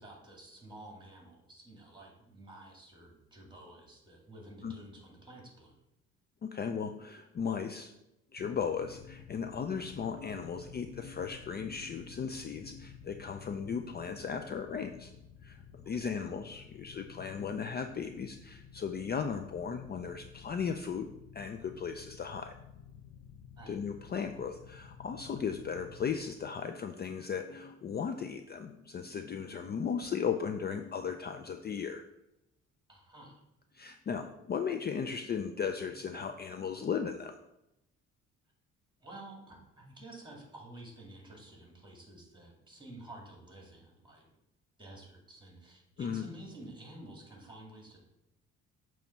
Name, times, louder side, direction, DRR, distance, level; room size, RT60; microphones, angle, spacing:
voice 1, 0.0-5.7 16.0-16.1 23.6-23.8 32.9-33.4 39.0-44.2 44.8-48.0, right 1 dB, 15° right, 0 dB, 2.2 m, -51 dB
voice 2, 6.4-7.9 8.3-15.1 15.4-21.1 21.3-22.5 23.7-32.0 33.7-37.3 46.0-46.3, left 6 dB, 35° left, 7 dB, 0.4 m, -36 dB
sound 1, 8.4-26.2, left 7 dB, 60° left, 0.9 m, -53 dB
6.8 x 3.1 x 5.8 m, 0.87 s
cardioid pair, 90°, 30 cm